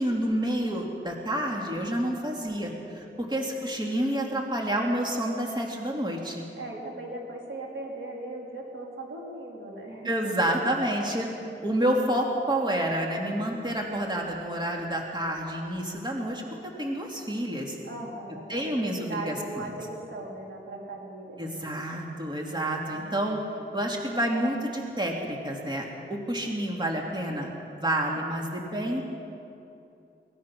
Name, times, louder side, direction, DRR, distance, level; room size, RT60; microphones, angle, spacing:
voice 1, 0.0-6.5 10.0-11.3 11.6-16.4 16.8-17.8 18.5-19.7 21.4-23.4 23.7-29.0, right 1 dB, 20° right, -1 dB, 2.7 m, -29 dB
voice 2, 3.0-3.4 6.6-10.1 17.8-21.7 22.8-23.2, right 2 dB, 70° right, -2 dB, 4.1 m, -39 dB
23.0 x 19.0 x 6.1 m, 2.8 s
wide cardioid pair, 80°, 21 cm